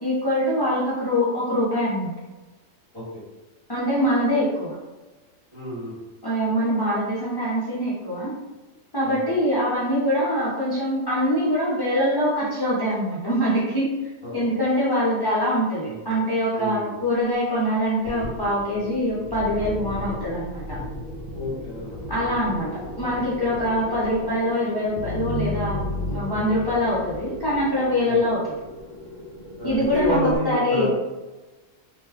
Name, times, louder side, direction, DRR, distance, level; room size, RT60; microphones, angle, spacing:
voice 1, 0.0-2.1 3.7-4.8 6.2-8.3 8.9-13.9 14.3-20.8 22.1-25.8 26.1-28.6 29.6-30.9, equal, 25° left, -8 dB, 0.5 m, -24 dB
voice 2, 5.5-6.0 9.0-9.2 14.2-14.4 15.8-16.2 16.5-16.9 21.3-22.1 28.0-28.2 29.6-30.9, left 1 dB, 25° right, -9 dB, 0.7 m, -29 dB
sound 1, 18.0-30.4, left 1 dB, 75° right, 1.2 m, -34 dB
3.0 x 2.2 x 3.4 m, 1.2 s
omnidirectional pair, 1.3 m